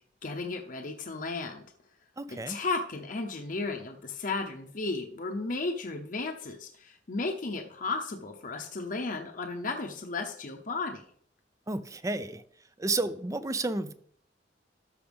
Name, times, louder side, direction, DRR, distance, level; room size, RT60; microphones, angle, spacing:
voice 1, 0.2-1.7 2.3-11.0, left 3 dB, 50° left, 2 dB, 0.8 m, -34 dB
voice 2, 2.2-2.6 11.7-12.4 12.8-13.9, right 2 dB, 20° right, 13 dB, 0.5 m, -31 dB
13.0 x 5.8 x 3.5 m, 0.63 s
head